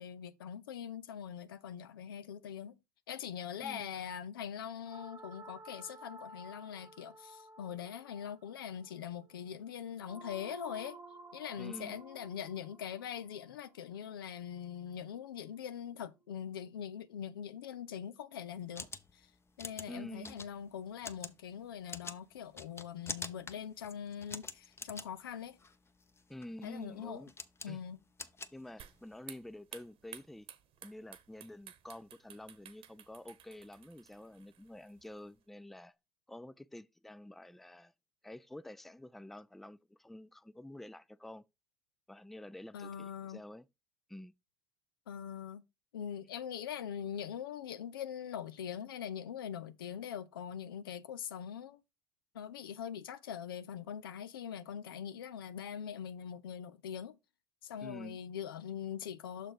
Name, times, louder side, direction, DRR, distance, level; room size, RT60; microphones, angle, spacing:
voice 1, 0.0-2.8 3.1-11.0 11.3-18.9 19.1-19.3 19.6-25.6 26.6-27.2 27.6-28.0 42.7-43.4 45.1-45.6 45.9-51.8 52.3-57.2 57.6-59.5, left 8 dB, 85° left, 0.5 m, -42 dB
sound 1, 4.8-15.0, right 2 dB, 25° right, 0.9 m, -54 dB
voice 2, 11.6-12.0 19.9-20.4 26.3-27.3 27.7-27.8 28.5-30.5 30.8-35.9 36.3-37.9 38.2-41.4 42.1-43.7 44.1-44.3 57.8-58.2, left 1 dB, ahead, 0.3 m, -49 dB
sound 2, 18.5-29.2, left 4 dB, 20° left, 0.8 m, -47 dB
sound 3, 28.8-35.4, right 10 dB, 55° right, 1.1 m, -55 dB
6.4 x 4.2 x 4.9 m
hypercardioid pair, 65°, 12 cm